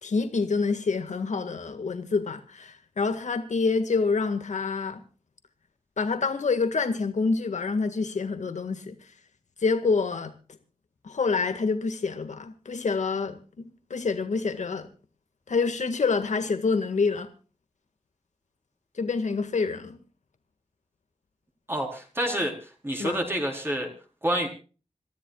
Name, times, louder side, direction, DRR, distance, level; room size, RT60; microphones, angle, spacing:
voice 1, 0.0-5.0 6.0-8.9 9.6-10.4 11.0-14.9 15.5-17.3 19.0-20.0 23.0-23.2, left 4 dB, 80° left, 1.9 m, -27 dB
voice 2, 21.7-22.5 22.8-23.9 24.2-24.5, right 1 dB, 20° right, 4.4 m, -27 dB
27.5 x 14.0 x 2.4 m
wide cardioid pair, 95°, 12 cm